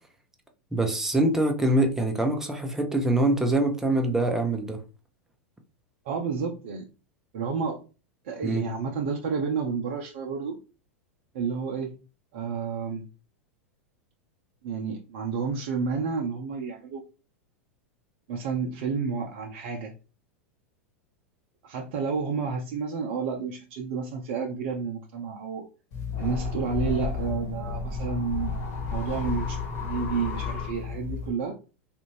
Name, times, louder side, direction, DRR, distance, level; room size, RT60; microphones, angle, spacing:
voice 1, 0.7-4.8 8.4-8.7, right 1 dB, 5° right, 0.7 m, -24 dB
voice 2, 6.0-6.9 7.3-7.8 8.2-10.6 11.3-11.9 12.3-13.0 14.6-17.0 18.3-19.9 21.6-25.7 26.2-28.5 28.9-31.6, right 5 dB, 55° right, 0.6 m, -30 dB
sound 1, 25.9-31.3, left 5 dB, 50° left, 1.4 m, -32 dB
3.3 x 2.5 x 3.0 m
figure-of-eight pair, 90°, 7 cm